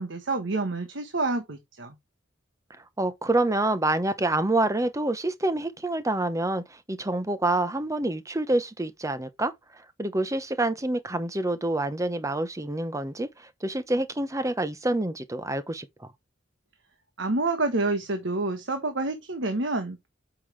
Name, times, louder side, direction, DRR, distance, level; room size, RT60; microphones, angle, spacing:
voice 1, 0.0-1.9 17.2-20.1, right 2 dB, 70° right, 1.2 m, -28 dB
voice 2, 3.0-9.5 10.0-15.9, right 2 dB, 15° right, 0.8 m, -27 dB
8.3 x 5.7 x 3.3 m
head